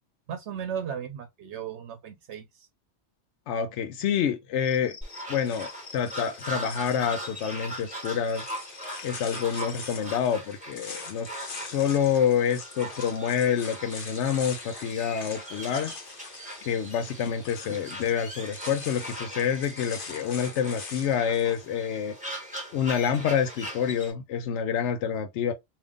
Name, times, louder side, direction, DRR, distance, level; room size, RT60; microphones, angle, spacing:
voice 1, 0.3-2.7, right 8 dB, 80° right, 0.9 m, -36 dB
voice 2, 3.5-5.0 5.3-8.5 9.0-16.0 16.6-22.2 22.7-25.5, left 8 dB, 80° left, 0.9 m, -27 dB
Cricket, 4.6-10.2, left 4 dB, 30° left, 2.0 m, -48 dB
sound 1, 5.0-24.1, equal, 5° right, 1.6 m, -40 dB
sound 2, 5.4-21.6, left 4 dB, 50° left, 1.0 m, -44 dB
3.5 x 2.7 x 3.4 m
omnidirectional pair, 1.2 m